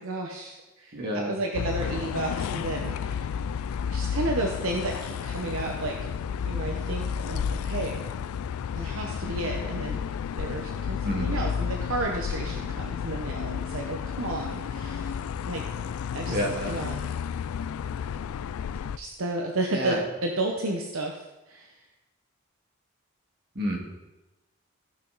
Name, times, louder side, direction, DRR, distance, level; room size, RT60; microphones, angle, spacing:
voice 1, 0.0-3.3 3.9-6.0 6.5-8.1 8.8-10.0 10.4-15.1 15.4-15.6 16.1-16.4 16.7-17.1 19.0-21.7, right 2 dB, 70° right, 1 dB, 0.9 m, -32 dB
voice 2, 0.9-1.3 11.0-11.4 16.3-16.8 19.7-20.0 23.6-23.8, equal, 45° right, 0 dB, 2.0 m, -29 dB
sound 1, 1.5-19.0, left 7 dB, 75° left, 0.3 m, -32 dB
15.0 x 6.0 x 4.0 m, 1.0 s
head